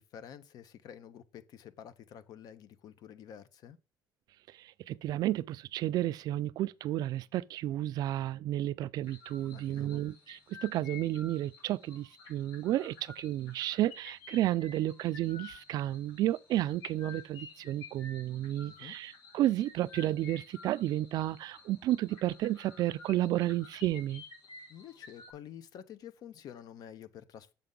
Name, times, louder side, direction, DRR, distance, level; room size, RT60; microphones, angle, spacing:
voice 1, 0.0-3.8 9.4-10.0 18.6-18.9 24.7-27.5, left 9 dB, 65° left, 0.7 m, -49 dB
voice 2, 4.5-24.2, right 14 dB, 65° right, 0.4 m, -32 dB
sound 1, 9.0-25.3, left 5 dB, 85° left, 2.2 m, -52 dB
6.8 x 5.3 x 3.8 m
cardioid pair, 140°, 7 cm